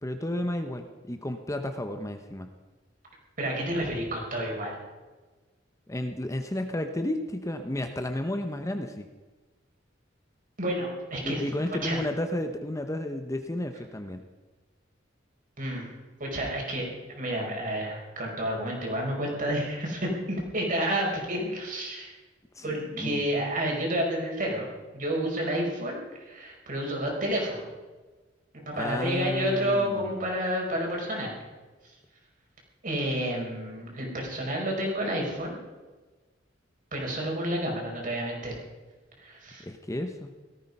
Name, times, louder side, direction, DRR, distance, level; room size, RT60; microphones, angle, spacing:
voice 1, 0.0-2.5 5.9-9.1 11.2-14.2 22.5-23.2 28.7-30.1 39.6-40.3, left 1 dB, 15° left, 6 dB, 0.9 m, -32 dB
voice 2, 3.4-4.8 10.6-11.4 11.7-12.0 15.6-15.9 16.2-22.1 22.6-24.7 24.9-27.7 28.7-31.3 32.8-35.5 36.9-38.5 39.2-39.6, right 1 dB, 45° right, -1 dB, 5.1 m, -30 dB
18.0 x 14.0 x 5.4 m, 1.3 s
head